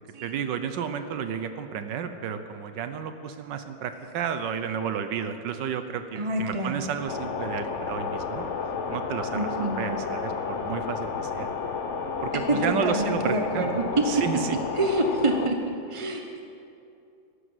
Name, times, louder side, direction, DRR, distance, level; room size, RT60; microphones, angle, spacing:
voice 1, 0.2-8.5 8.9-11.5 12.2-14.6, right 7 dB, 75° right, 9 dB, 1.4 m, -32 dB
voice 2, 6.1-6.8 9.3-9.8 12.5-14.0 14.7-15.6 15.9-16.2, right 2 dB, 30° right, 3 dB, 0.6 m, -26 dB
sound 1, 6.8-15.7, right 2 dB, 55° right, 1.7 m, -44 dB
sound 2, 7.1-15.5, left 6 dB, 55° left, 0.9 m, -32 dB
13.5 x 12.5 x 7.8 m, 2.6 s
omnidirectional pair, 2.0 m